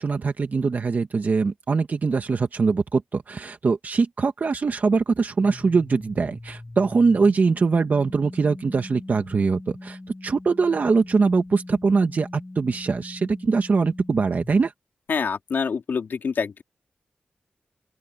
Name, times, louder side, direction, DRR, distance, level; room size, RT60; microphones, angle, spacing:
voice 1, 0.0-12.3 12.5-14.7, right 4 dB, 55° right, 1.6 m, -22 dB
sound 1, 5.4-14.7, left 2 dB, 20° left, 7.1 m, -41 dB
voice 2, 15.1-16.6, left 5 dB, 85° left, 3.6 m, -26 dB
open air
wide cardioid pair, 105°, 3 cm